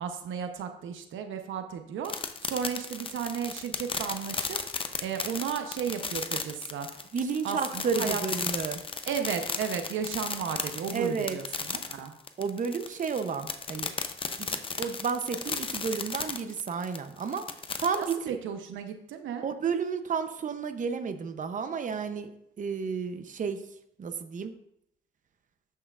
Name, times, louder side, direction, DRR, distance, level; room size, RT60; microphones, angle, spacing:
voice 1, 0.0-4.6 5.0-6.9 7.4-8.2 9.1-12.1 18.0-19.5, right 7 dB, 80° right, 6 dB, 0.8 m, -34 dB
sound 1, 2.0-18.1, left 4 dB, 25° left, 0.7 m, -34 dB
voice 2, 7.1-8.8 10.9-11.4 12.4-13.9 14.4-17.4 17.8-18.4 19.4-22.3 22.6-23.6 24.0-24.5, right 6 dB, 40° right, 8 dB, 0.7 m, -31 dB
13.0 x 5.6 x 2.5 m, 0.75 s
cardioid pair, 90°, 20 cm